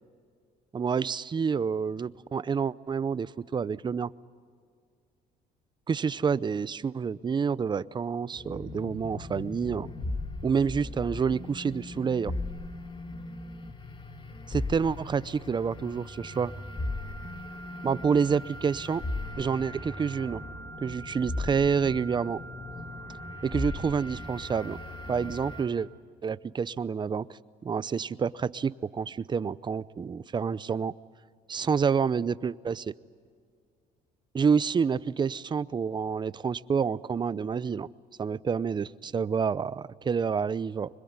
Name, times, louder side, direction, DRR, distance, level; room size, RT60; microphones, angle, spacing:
voice 1, 0.7-4.1 5.9-9.9 10.4-12.3 14.5-16.5 17.8-19.0 19.4-20.4 20.8-22.4 23.4-24.8 25.1-25.9 26.2-30.9 31.5-32.9 34.3-37.9 38.2-40.9, right 6 dB, 25° right, 18 dB, 0.6 m, -28 dB
sound 1, 8.3-25.7, left 2 dB, 30° left, 2.5 m, -38 dB
sound 2, 15.6-25.5, right 3 dB, 80° left, 6.0 m, -46 dB
25.0 x 22.0 x 9.6 m, 2.1 s
cardioid pair, 110°, 17 cm